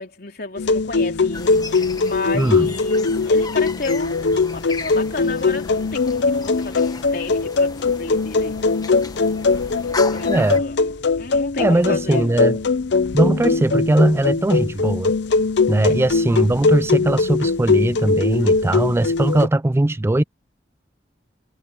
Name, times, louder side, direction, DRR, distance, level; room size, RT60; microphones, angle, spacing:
voice 1, 0.0-8.6 9.9-10.8 11.2-12.4, left 3 dB, 60° left, 3.9 m, -32 dB
sound 1, 0.6-19.5, left 4 dB, 80° left, 0.6 m, -20 dB
sound 2, 1.3-10.6, left 3 dB, 25° left, 1.2 m, -36 dB
voice 2, 2.3-2.7 10.3-10.6 11.6-12.6 13.1-15.1 15.7-20.2, right 1 dB, 15° right, 0.3 m, -19 dB
head